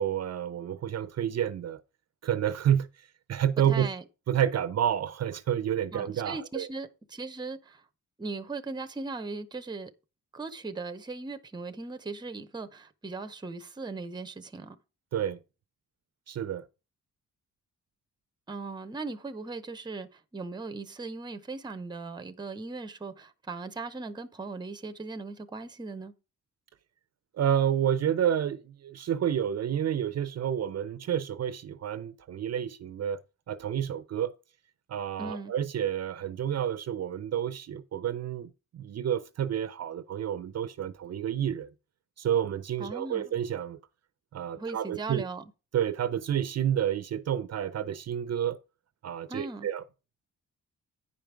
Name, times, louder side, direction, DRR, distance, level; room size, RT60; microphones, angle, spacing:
voice 1, 0.0-1.8 2.2-2.9 3.3-3.9 4.3-6.7 15.1-15.4 16.3-16.7 27.4-33.2 33.5-34.3 34.9-41.7 42.2-43.8 44.3-45.3 45.7-48.6 49.0-49.8, right 9 dB, 55° right, 0.6 m, -29 dB
voice 2, 3.7-4.0 5.9-7.8 8.2-9.9 10.3-14.8 18.5-26.1 35.2-35.5 42.8-43.3 44.5-45.4 49.3-49.7, right 3 dB, 15° right, 0.7 m, -38 dB
9.9 x 5.1 x 4.6 m
wide cardioid pair, 170°, 32 cm